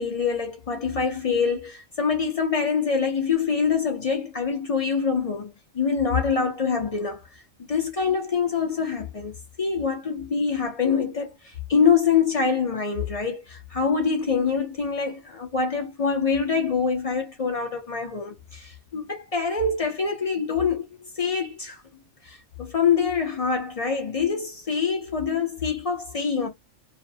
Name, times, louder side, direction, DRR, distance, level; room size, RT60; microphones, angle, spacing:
voice 1, 0.0-7.2 7.7-21.8 22.2-26.5, left 5 dB, 55° left, 0.4 m, -25 dB
2.4 x 2.1 x 2.6 m
omnidirectional pair, 1.3 m